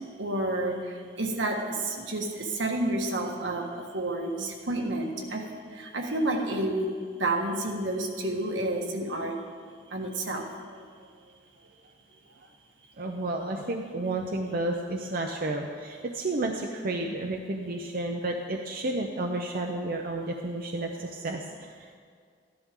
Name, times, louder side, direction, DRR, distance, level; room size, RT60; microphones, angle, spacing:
voice 1, 0.2-5.4 5.7-6.9 7.2-9.4 9.9-10.8 13.6-13.7, right 1 dB, 75° right, 1 dB, 1.5 m, -30 dB
voice 2, 13.0-21.9, right 2 dB, 50° right, 2 dB, 0.7 m, -31 dB
14.0 x 11.0 x 3.7 m, 2.1 s
head